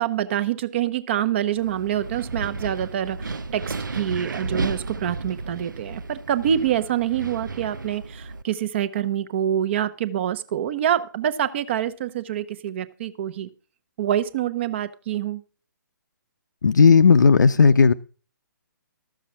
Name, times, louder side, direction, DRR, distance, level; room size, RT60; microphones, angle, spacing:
voice 1, 0.0-13.5 14.0-15.4, right 10 dB, 35° right, 0.9 m, -26 dB
Wind, 1.6-8.4, right 3 dB, 75° right, 0.7 m, -33 dB
voice 2, 16.6-17.9, left 5 dB, 65° left, 0.5 m, -14 dB
13.0 x 7.0 x 6.0 m
figure-of-eight pair, 135°, 11 cm